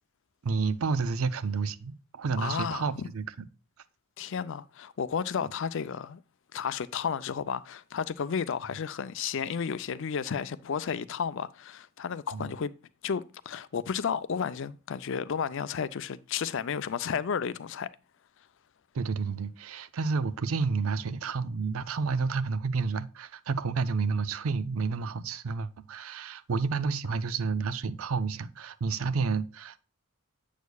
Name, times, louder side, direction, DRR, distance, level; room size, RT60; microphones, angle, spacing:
voice 1, 0.4-3.5 12.3-12.5 18.9-29.8, right 4 dB, 75° right, 0.5 m, -30 dB
voice 2, 2.3-3.1 4.2-6.2 6.5-12.7 13.0-17.9, left 7 dB, 60° left, 0.4 m, -32 dB
8.1 x 6.4 x 2.3 m
head